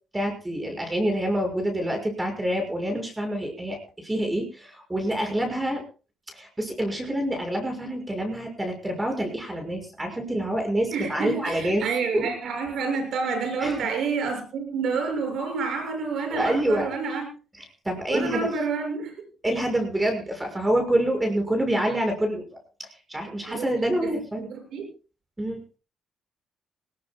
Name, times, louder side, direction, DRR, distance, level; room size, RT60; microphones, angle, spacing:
voice 1, 0.1-5.8 6.3-11.8 12.1-12.3 13.6-13.9 16.3-16.9 17.8-18.5 19.4-22.4 22.8-24.5 25.4-25.6, right 1 dB, 15° right, 4 dB, 5.9 m, -27 dB
voice 2, 10.9-17.3 18.1-19.1 23.5-23.7 24.0-24.8, right 5 dB, 70° right, 4 dB, 6.6 m, -29 dB
20.0 x 19.0 x 2.3 m, 0.34 s
cardioid pair, 90°, 0 cm